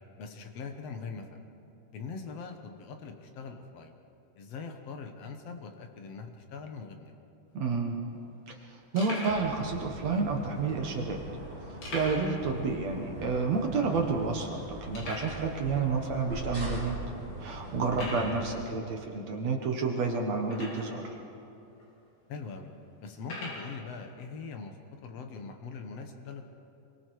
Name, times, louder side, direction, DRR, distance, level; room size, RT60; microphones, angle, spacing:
voice 1, 0.2-1.4 1.9-4.0 4.4-7.1 17.9-18.2 22.3-22.7 23.0-26.5, left 5 dB, 60° left, 5 dB, 1.8 m, -42 dB
sound 1, 7.5-7.6 7.8-7.9 8.5-8.6 9.0-9.5 10.2-10.3 11.8-12.4 12.7-12.8 13.2-13.3 13.9-14.0 14.9-15.4 16.2-16.3 16.8-17.0 17.9-18.4 20.4-21.0 21.8-21.9 23.2-23.7, left 1 dB, 85° left, 6.9 m, -39 dB
voice 2, 7.5-8.0 8.5-8.6 8.9-11.2 11.7-16.9 17.4-21.1, right 4 dB, 55° right, 1 dB, 2.2 m, -30 dB
sound 2, 9.3-18.7, right 1 dB, 10° right, 5.6 m, -42 dB
27.0 x 23.5 x 4.8 m, 2.7 s
omnidirectional pair, 4.4 m